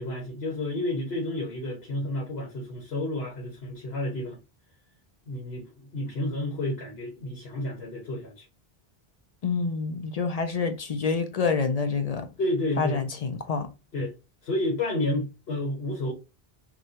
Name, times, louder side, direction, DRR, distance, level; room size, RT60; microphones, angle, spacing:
voice 1, 0.0-4.4 5.3-8.4 12.4-13.0 13.9-14.1 14.4-16.1, left 1 dB, 80° left, 1.4 m, -30 dB
voice 2, 9.4-12.3 12.8-13.7, left 5 dB, 50° left, 0.5 m, -27 dB
6.2 x 2.3 x 2.8 m
omnidirectional pair, 1.0 m